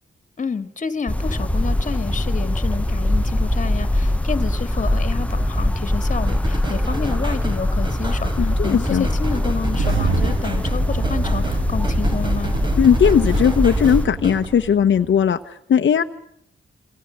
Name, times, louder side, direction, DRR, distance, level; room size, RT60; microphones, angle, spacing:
voice 1, 0.4-12.6, left 5 dB, 40° left, 11 dB, 2.1 m, -29 dB
sound 1, 1.1-14.0, left 1 dB, 5° left, 1.0 m, -22 dB
sound 2, 6.3-14.5, right 1 dB, 25° right, 3.9 m, -32 dB
voice 2, 8.4-9.1 12.8-16.0, left 8 dB, 75° left, 6 dB, 1.1 m, -17 dB
Engine starting, 9.8-15.3, right 5 dB, 80° right, 2.2 m, -28 dB
27.5 x 25.5 x 6.5 m, 0.70 s
wide cardioid pair, 140°, 19 cm